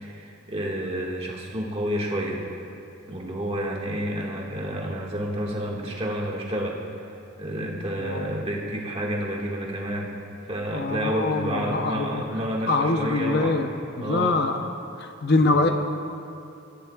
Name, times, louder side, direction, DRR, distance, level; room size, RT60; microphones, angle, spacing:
voice 1, 0.0-2.4 3.1-6.8 7.4-10.1 10.5-13.6 14.0-14.4 15.2-15.3, equal, 30° right, -2 dB, 1.8 m, -30 dB
voice 2, 8.0-8.4 10.7-12.2 12.7-13.7 14.0-14.6 15.0-15.7, left 3 dB, 50° left, 5 dB, 0.8 m, -24 dB
24.5 x 15.5 x 2.4 m, 2.7 s
head